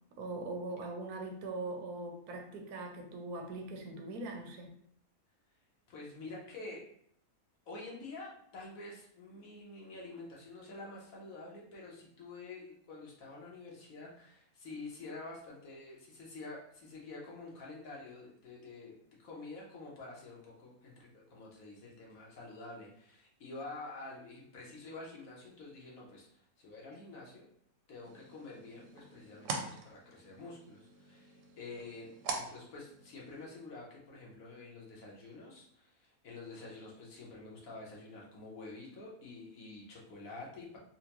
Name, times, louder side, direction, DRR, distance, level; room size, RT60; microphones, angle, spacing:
voice 1, 0.2-4.7, right 2 dB, 90° right, 3 dB, 1.2 m, -41 dB
voice 2, 5.9-6.8 7.7-18.9 19.2-27.4 27.9-40.8, left 3 dB, 70° left, -3 dB, 1.4 m, -48 dB
sound 1, 28.0-33.5, right 3 dB, 70° right, 0.9 m, -44 dB
4.2 x 2.2 x 2.9 m, 0.65 s
omnidirectional pair, 1.6 m